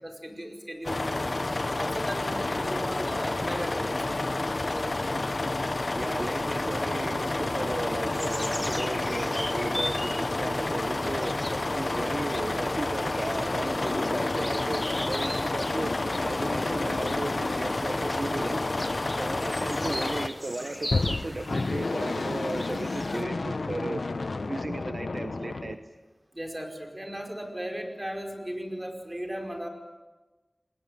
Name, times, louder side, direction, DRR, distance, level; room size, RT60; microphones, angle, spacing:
voice 1, 0.0-1.3 1.7-4.3 4.7-5.6 19.5-19.6 26.3-29.7, equal, 20° right, 3 dB, 5.0 m, -37 dB
sound 1, 0.8-20.3, left 2 dB, 50° left, 1.0 m, -30 dB
voice 2, 5.9-15.9 16.2-18.6 19.2-24.0 24.5-25.8, right 2 dB, 55° right, 7 dB, 1.2 m, -35 dB
sound 2, 8.1-23.2, equal, 10° left, 1.2 m, -39 dB
sound 3, 13.5-19.8 20.8-25.8, left 3 dB, 80° left, 1.0 m, -33 dB
28.5 x 20.0 x 9.3 m, 1.2 s
wide cardioid pair, 65°, 0 cm